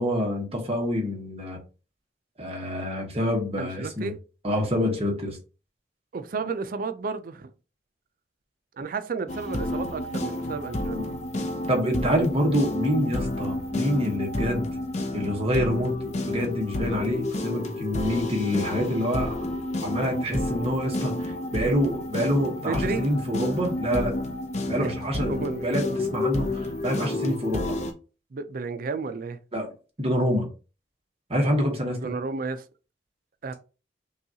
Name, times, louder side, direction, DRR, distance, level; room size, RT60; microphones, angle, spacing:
voice 1, 0.0-1.6 2.4-4.1 4.4-5.4 10.9-11.0 11.7-14.7 15.1-19.5 19.8-24.1 24.7-27.8 29.5-29.7 30.0-30.5 31.3-32.1, equal, 35° right, 1.1 m, -27 dB
voice 2, 3.6-4.2 6.1-7.5 8.8-11.0 22.6-23.1 24.8-24.9 25.3-25.7 28.3-29.4 32.0-32.6 33.4-33.5, right 4 dB, 50° right, 0.4 m, -32 dB
sound 1, 9.3-27.9, left 1 dB, 40° left, 0.6 m, -30 dB
5.5 x 2.4 x 2.8 m
head